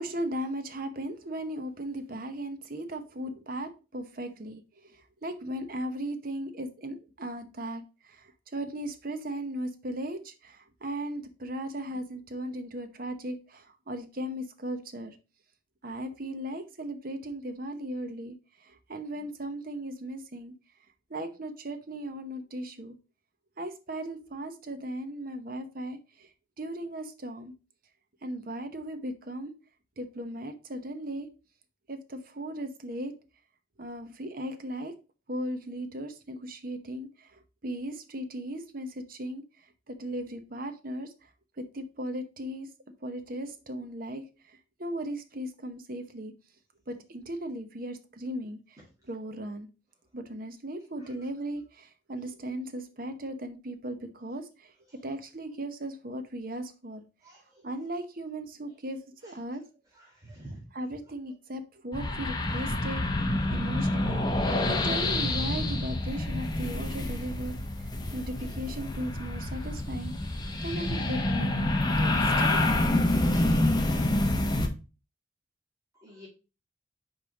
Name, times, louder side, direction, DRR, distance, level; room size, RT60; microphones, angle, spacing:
voice 1, 0.0-15.2 15.8-18.3 18.6-20.5 21.1-23.0 23.6-26.3 26.6-27.5 28.2-29.5 30.0-31.3 31.9-33.1 33.8-34.9 35.3-39.4 39.9-41.1 41.6-42.7 43.0-46.3 46.9-48.8 49.1-49.7 50.1-54.7 55.0-57.0 57.6-59.6 60.7-70.1 70.6-71.7 72.0-73.0, right 1 dB, 50° right, 8 dB, 0.9 m, -37 dB
voice 2, 57.2-57.6 59.2-59.3 59.9-60.7 75.9-76.3, right 1 dB, 20° right, -5 dB, 2.1 m, -48 dB
sound 1, 61.9-74.7, left 1 dB, 20° left, 0.9 m, -27 dB
5.2 x 4.5 x 4.9 m, 0.31 s
head